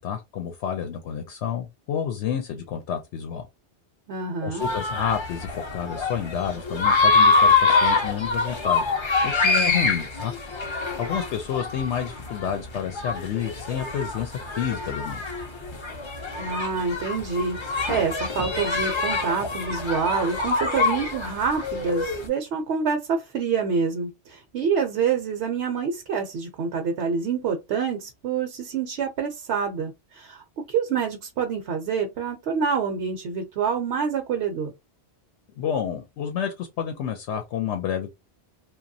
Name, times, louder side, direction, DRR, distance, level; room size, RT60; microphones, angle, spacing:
voice 1, 0.0-3.5 4.4-8.9 9.2-15.2 35.6-38.1, left 8 dB, 85° left, 0.9 m, -30 dB
voice 2, 4.1-4.7 9.6-10.0 16.4-34.7, right 6 dB, 70° right, 0.8 m, -27 dB
sound 1, 4.6-22.3, left 3 dB, 35° left, 0.5 m, -25 dB
2.9 x 2.3 x 2.6 m
omnidirectional pair, 1.1 m